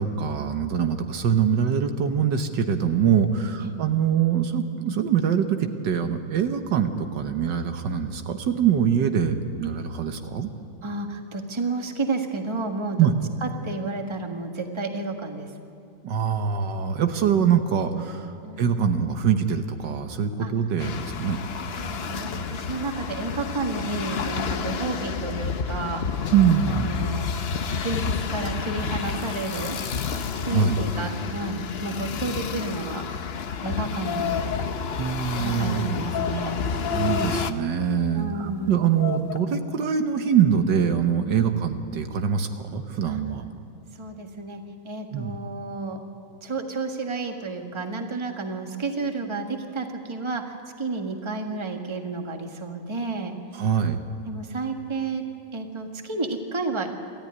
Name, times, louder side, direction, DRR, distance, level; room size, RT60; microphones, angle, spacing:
voice 1, 0.0-10.5 13.0-13.1 16.0-21.4 26.3-26.9 30.4-30.8 35.0-36.0 36.9-43.4 45.1-45.4 53.5-54.0, right 7 dB, 75° right, 7 dB, 1.7 m, -24 dB
voice 2, 3.4-3.7 10.8-13.1 13.4-15.5 18.4-18.6 20.4-20.5 21.8-26.0 26.6-27.3 27.8-29.8 30.4-33.1 33.6-34.5 35.3-36.6 38.1-38.8 41.4-41.6 43.1-43.2 44.0-46.0 46.4-53.4 54.3-55.2 55.5-56.9, right 3 dB, 15° right, 4 dB, 1.4 m, -31 dB
sound 1, 20.8-37.5, left 6 dB, 55° left, 0.7 m, -30 dB
sound 2, 33.6-33.7 34.0-34.7 35.4-35.6 36.1-36.5 36.8-37.5 38.2-38.5 39.0-39.4, left 9 dB, 75° left, 1.8 m, -30 dB
26.5 x 14.0 x 9.7 m, 2.6 s
omnidirectional pair, 2.0 m